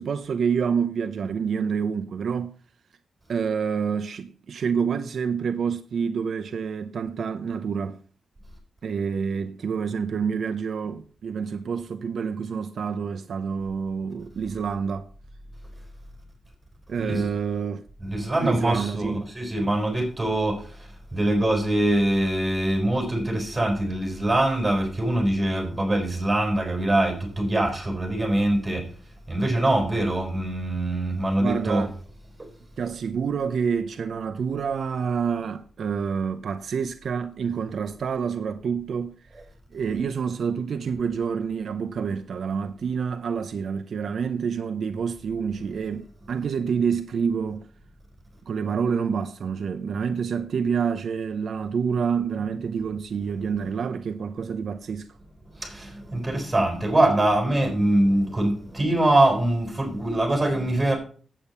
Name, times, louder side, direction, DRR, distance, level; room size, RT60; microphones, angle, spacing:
voice 1, 0.0-2.6 3.3-8.0 8.8-15.1 16.9-17.9 18.4-19.3 31.4-31.9 32.8-39.4 39.7-47.6 48.5-55.1, right 6 dB, 65° right, 0.6 m, -28 dB
voice 2, 17.0-17.3 18.0-28.9 29.3-31.9 55.6-60.9, right 1 dB, 15° right, 4.5 m, -23 dB
8.7 x 8.5 x 6.7 m
wide cardioid pair, 155°, 0 cm